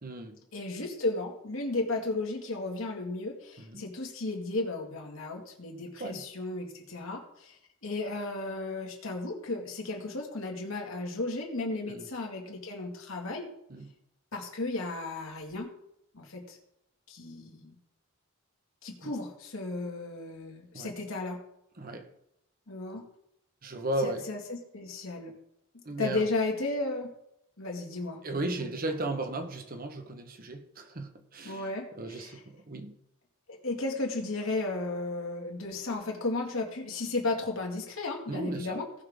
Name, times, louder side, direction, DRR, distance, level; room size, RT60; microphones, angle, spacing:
voice 1, 0.0-0.4 3.6-3.9 6.0-6.3 11.9-12.1 13.7-13.9 19.0-19.1 20.7-20.9 21.8-22.1 23.6-24.3 25.8-26.3 28.2-31.7 32.0-33.0 38.3-39.0, right 2 dB, 45° right, 1.1 m, -36 dB
voice 2, 0.5-13.5 14.3-15.7 16.1-16.6 17.1-17.8 18.8-21.4 22.7-23.0 24.0-25.3 26.0-27.1 27.6-28.2 31.4-32.4 33.5-39.0, left 2 dB, 75° left, 2.1 m, -34 dB
17.5 x 5.8 x 3.6 m
head